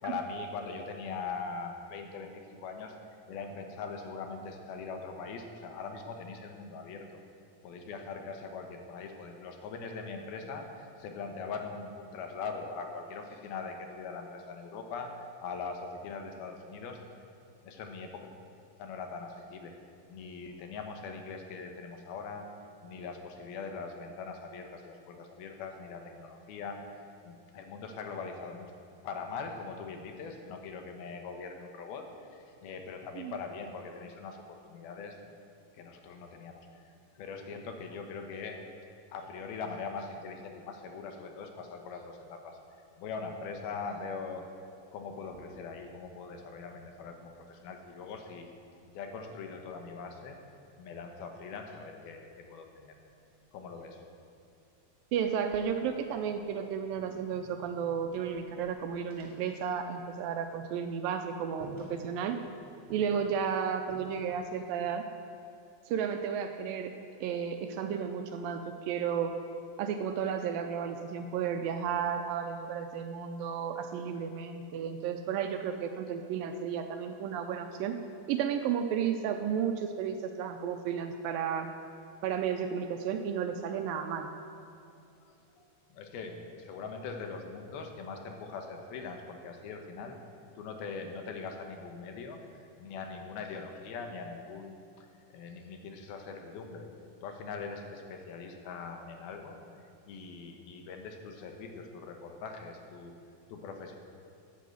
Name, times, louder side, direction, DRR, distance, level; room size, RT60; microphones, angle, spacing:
voice 1, 0.0-2.9 3.3-7.2 7.6-17.0 17.6-18.3 18.8-19.7 20.1-22.5 22.8-26.8 27.2-35.2 35.7-36.8 37.2-38.6 39.1-42.6 43.0-44.4 44.9-48.5 48.9-50.4 50.8-53.0 53.5-54.0 85.9-90.2 90.6-92.4 92.8-95.1 95.3-96.9 97.2-99.6 100.1-103.1 103.5-104.0, left 4 dB, 80° left, 4 dB, 3.0 m, -41 dB
sound 1, 44.9-48.1 48.4-51.3 52.7-54.7 55.1-60.4 60.7-60.9 61.2-61.3 61.6-62.5 62.9-64.6, right 2 dB, 20° right, 2.3 m, -54 dB
voice 2, 55.1-62.4 62.9-65.0 65.9-66.9 67.2-69.3 69.8-81.7 82.2-84.3, right 7 dB, 80° right, 6 dB, 2.2 m, -33 dB
12.5 x 8.4 x 7.8 m, 2.6 s
omnidirectional pair, 4.4 m